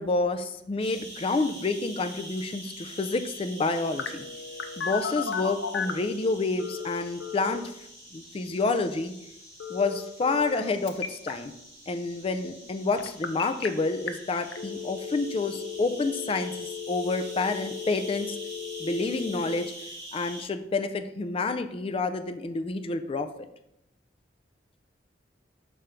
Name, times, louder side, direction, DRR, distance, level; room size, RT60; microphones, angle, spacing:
voice 1, 0.0-4.3 4.8-7.6 8.1-9.1 9.7-11.5 11.9-18.4 18.8-19.7 20.1-23.3, left 3 dB, 30° left, 9 dB, 0.4 m, -29 dB
sound 1, 0.8-20.4, right 1 dB, 15° right, 2.5 m, -45 dB
Telephone, 4.0-6.1 6.6-7.6 9.6-10.6 10.9-11.3 13.0-13.7 14.1-14.2 14.5-19.6, left 7 dB, 80° left, 0.6 m, -35 dB
5.1 x 3.4 x 5.6 m, 0.81 s
head